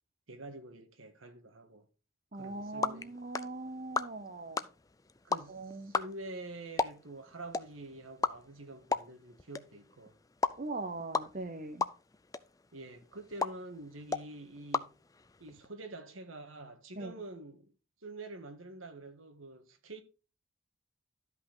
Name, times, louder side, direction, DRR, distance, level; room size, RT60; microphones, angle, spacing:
voice 1, 0.3-1.8 2.3-3.1 5.2-10.2 12.7-15.0 15.4-17.7 18.0-20.0, right 2 dB, 85° right, 1.6 m, -47 dB
voice 2, 2.3-4.6 5.5-5.9 10.6-11.8 17.0-17.1, right 2 dB, 40° right, 0.9 m, -40 dB
sound 1, 2.4-15.7, left 4 dB, 15° left, 0.4 m, -38 dB
12.5 x 5.6 x 4.0 m
head